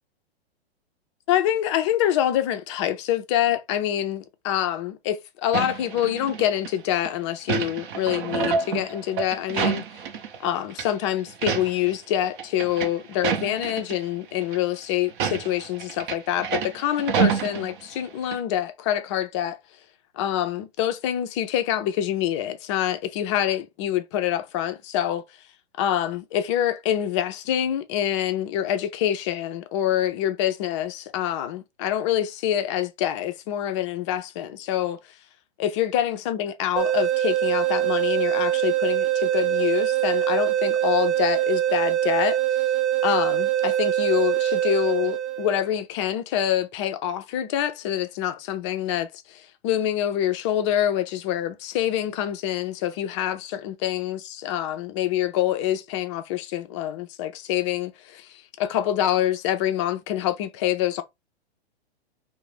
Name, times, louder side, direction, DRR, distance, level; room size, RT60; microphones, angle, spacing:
voice 1, 1.3-9.9 10.4-19.6 20.2-25.2 25.8-35.0 35.6-42.6 43.0-61.0, left 11 dB, 30° left, 0.4 m, -26 dB
sound 1, 5.5-6.7 7.0-10.4 10.7-10.9 11.3-11.9 12.2-14.0 14.4-14.6 15.1-18.1 18.3-18.4, right 6 dB, 50° right, 0.6 m, -28 dB
sound 2, 36.8-45.7, right 12 dB, 90° right, 0.6 m, -23 dB
2.4 x 2.0 x 3.2 m
hypercardioid pair, 125°, 32 cm